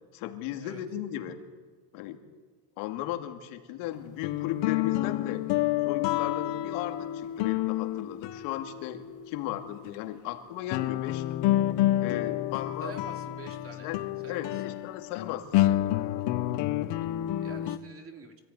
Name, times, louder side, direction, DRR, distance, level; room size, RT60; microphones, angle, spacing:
voice 1, 0.1-1.4 1.9-2.2 2.8-5.5 5.8-11.2 12.0-13.0 13.8-15.9, left 12 dB, 80° left, 6 dB, 2.5 m, -36 dB
sound 1, 3.9-9.2 9.9-10.0 10.7-17.8, left 14 dB, 60° left, 1.0 m, -29 dB
voice 2, 12.8-14.6 17.0-18.4, right 4 dB, 25° right, 4 dB, 2.8 m, -47 dB
25.5 x 14.0 x 9.6 m, 1.4 s
cardioid pair, 140°, 48 cm